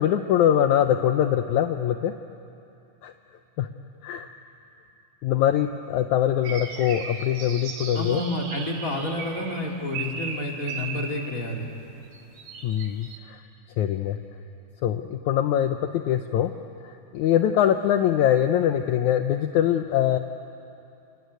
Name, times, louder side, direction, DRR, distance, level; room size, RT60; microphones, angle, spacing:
voice 1, 0.0-2.1 3.0-3.1 3.6-3.7 4.0-4.3 5.2-8.2 12.6-13.4 13.8-14.2 14.8-16.5 16.8-20.2, left 10 dB, 80° left, 7 dB, 1.7 m, -23 dB
sound 1, 6.4-11.3 12.1-13.2, right 5 dB, 60° right, 3.1 m, -37 dB
voice 2, 7.9-11.7, left 1 dB, 25° left, 0 dB, 2.7 m, -30 dB
29.5 x 20.5 x 9.4 m, 2.7 s
omnidirectional pair, 4.2 m